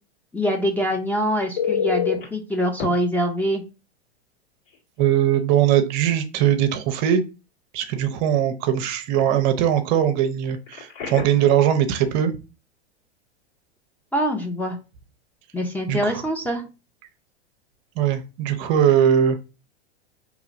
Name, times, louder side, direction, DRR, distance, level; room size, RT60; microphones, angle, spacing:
voice 1, 0.3-3.6 14.1-14.8 15.5-16.6, equal, 5° left, 2 dB, 0.5 m, -24 dB
Telephone, 1.6-2.2 2.8-2.9 4.7-4.8 5.2-5.4 10.7-11.5 18.6-18.8, left 7 dB, 60° left, 2.0 m, -27 dB
voice 2, 5.0-7.2 7.7-12.4 15.9-16.2 18.0-19.4, right 10 dB, 45° right, 8 dB, 0.6 m, -20 dB
4.8 x 3.0 x 2.5 m, 0.30 s
hypercardioid pair, 100°, 32 cm